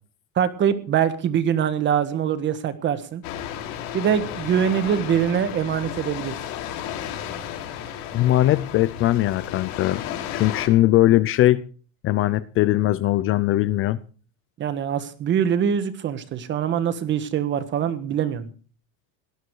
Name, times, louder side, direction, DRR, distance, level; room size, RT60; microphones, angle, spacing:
voice 1, 0.3-3.2 3.9-6.4 14.6-18.5, right 8 dB, 30° right, 12 dB, 1.5 m, -23 dB
sound 1, 3.2-10.7, left 10 dB, 60° left, 4.5 m, -33 dB
voice 2, 8.1-10.0 10.3-11.6 12.0-14.0, left 15 dB, 35° left, 16 dB, 0.6 m, -20 dB
19.0 x 13.0 x 4.8 m, 0.40 s
cardioid pair, 175°, 40 cm